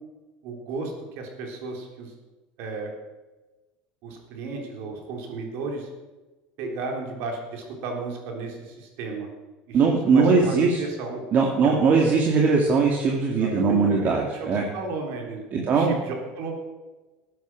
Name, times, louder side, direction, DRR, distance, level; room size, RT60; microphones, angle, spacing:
voice 1, 0.4-2.1 2.6-2.9 4.0-5.9 6.6-9.3 9.7-9.8 10.1-11.2 11.6-12.0 13.3-16.6, right 3 dB, 65° right, 2 dB, 3.6 m, -34 dB
voice 2, 9.7-10.8 11.3-14.6 15.5-15.9, right 4 dB, 45° right, 0 dB, 2.1 m, -20 dB
13.5 x 9.4 x 6.2 m, 1.2 s
supercardioid pair, 110°, 4 cm